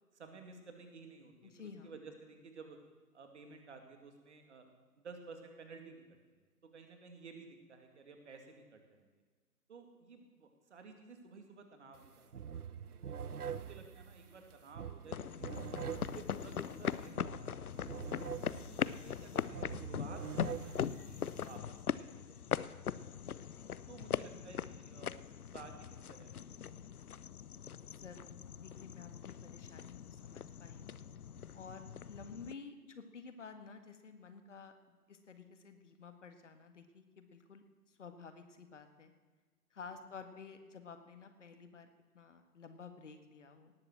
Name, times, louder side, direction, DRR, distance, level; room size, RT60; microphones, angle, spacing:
voice 1, 0.1-2.8 3.1-4.7 5.0-6.0 6.3-9.1 9.7-15.8 16.1-18.1 18.6-22.9 23.5-25.2 25.5-27.0, right 4 dB, 45° right, 5 dB, 2.5 m, -54 dB
voice 2, 1.4-2.0 28.0-31.0 31.5-39.1 39.7-43.7, left 5 dB, 50° left, 8 dB, 1.8 m, -52 dB
sound 1, 11.9-12.1 12.3-21.6, right 7 dB, 70° right, 0.7 m, -45 dB
sound 2, 15.1-32.5, left 8 dB, 70° left, 0.6 m, -41 dB
18.0 x 7.7 x 7.5 m, 1.4 s
figure-of-eight pair, 135°, 46 cm